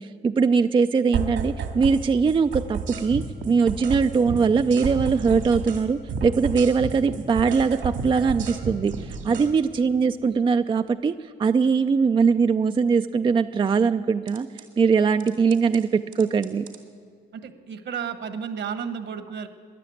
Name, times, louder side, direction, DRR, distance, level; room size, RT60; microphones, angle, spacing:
voice 1, 0.0-14.5 14.8-16.7, right 5 dB, 25° right, 9 dB, 0.4 m, -21 dB
sound 1, 1.1-2.0 2.3-5.8 6.1-9.5 14.3-14.6 15.2-15.8 16.1-16.8, right 5 dB, 80° right, 2.2 m, -31 dB
voice 2, 17.3-19.5, right 7 dB, 65° right, 9 dB, 1.3 m, -33 dB
14.5 x 10.5 x 9.2 m, 2.1 s
cardioid pair, 90°, 20 cm